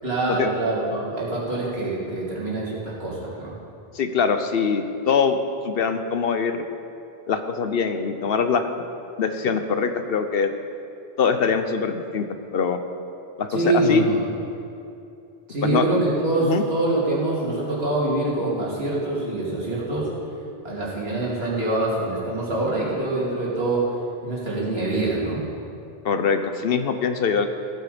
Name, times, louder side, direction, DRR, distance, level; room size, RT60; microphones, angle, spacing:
voice 1, 0.0-3.5 13.5-14.2 15.5-20.1 20.6-24.0 24.2-25.4, right 2 dB, 80° right, -6 dB, 3.0 m, -25 dB
voice 2, 3.9-5.4 5.6-6.6 7.3-8.7 9.2-10.5 11.2-12.2 12.5-12.9 13.4-14.1 15.6-15.8 16.4-16.6 26.0-27.5, left 6 dB, 70° left, 8 dB, 0.9 m, -23 dB
15.5 x 8.2 x 5.0 m, 2.6 s
omnidirectional pair, 1.0 m